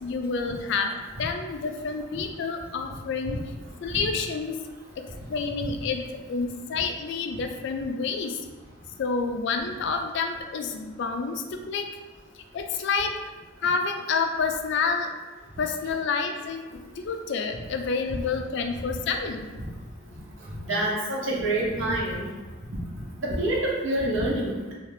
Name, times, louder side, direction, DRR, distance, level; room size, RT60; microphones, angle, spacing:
voice 1, 0.0-0.9 1.2-3.4 3.8-4.6 5.0-5.1 5.3-6.0 6.3-8.4 9.0-11.9 12.5-13.1 13.6-15.1 15.6-19.5, left 5 dB, 60° left, 5 dB, 0.3 m, -28 dB
voice 2, 20.6-22.2 23.2-24.7, right 1 dB, 70° right, -4 dB, 0.8 m, -26 dB
2.5 x 2.4 x 3.2 m, 1.2 s
head